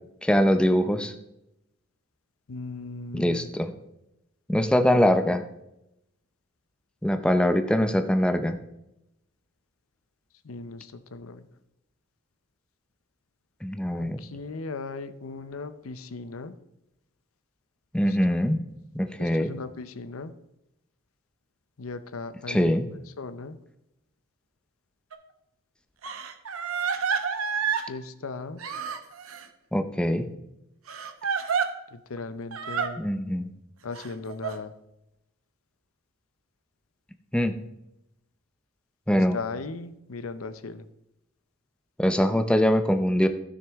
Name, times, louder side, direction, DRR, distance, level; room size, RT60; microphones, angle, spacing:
voice 1, 0.2-1.1 3.1-3.7 4.5-5.4 7.0-8.6 13.6-14.2 17.9-18.6 18.9-19.5 22.5-22.9 29.7-30.3 33.0-33.5 37.3-37.5 39.1-39.4 42.0-43.3, equal, 5° left, 8 dB, 0.6 m, -23 dB
voice 2, 2.5-3.5 10.4-11.4 13.9-16.5 18.1-18.4 19.2-20.3 21.8-22.8 23.2-23.6 27.8-28.6 31.9-33.0 33.8-34.8 39.1-40.9, left 3 dB, 80° left, 12 dB, 0.7 m, -37 dB
Crying sobbing, 25.1-25.2 26.0-27.9 28.6-29.5 30.9-31.7 32.5-32.9 33.9-34.5, right 6 dB, 80° right, 0.9 m, -29 dB
15.0 x 6.5 x 3.5 m, 0.86 s
head